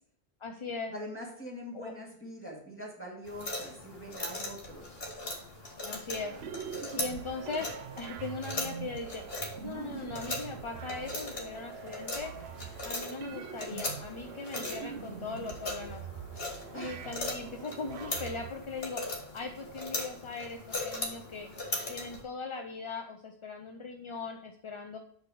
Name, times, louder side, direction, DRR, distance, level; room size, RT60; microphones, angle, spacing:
voice 1, 0.4-0.9 1.7-1.9 5.8-6.4 7.0-12.3 12.8-16.1 16.7-19.0 19.3-21.5 21.9-25.0, left 4 dB, 40° left, 4 dB, 0.4 m, -39 dB
voice 2, 0.9-5.0 16.7-17.0, equal, 10° left, -3 dB, 1.9 m, -43 dB
sound 1, 3.3-22.2, left 2 dB, 65° left, 1.9 m, -40 dB
sound 2, 6.1-18.5, right 8 dB, 80° right, 0.8 m, -44 dB
8.0 x 3.4 x 6.0 m, 0.63 s
omnidirectional pair, 1.1 m